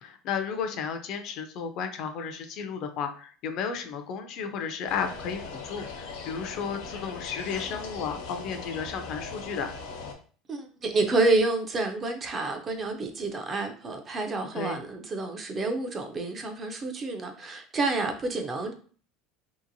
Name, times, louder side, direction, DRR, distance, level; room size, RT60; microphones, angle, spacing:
voice 1, 0.0-9.8 14.5-14.8, left 6 dB, 45° left, 0.4 m, -33 dB
sound 1, 4.9-10.1, left 4 dB, 85° left, 0.7 m, -39 dB
voice 2, 10.5-18.7, right 3 dB, 20° right, 0.4 m, -28 dB
2.9 x 2.8 x 2.6 m
cardioid pair, 165°, 0 cm